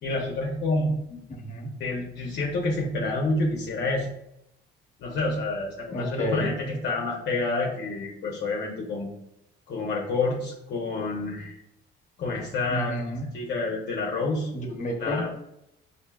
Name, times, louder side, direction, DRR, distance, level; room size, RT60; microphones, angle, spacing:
voice 1, 0.0-1.2 1.8-4.1 5.0-9.1 9.7-11.6 12.2-12.9 13.3-14.5 15.0-15.3, left 2 dB, 55° left, -2 dB, 0.8 m, -28 dB
voice 2, 1.3-1.7 5.9-6.5 12.7-13.3 14.5-15.3, left 1 dB, 40° left, 0 dB, 1.1 m, -30 dB
5.4 x 2.7 x 2.3 m, 0.84 s
cardioid pair, 115°, 20 cm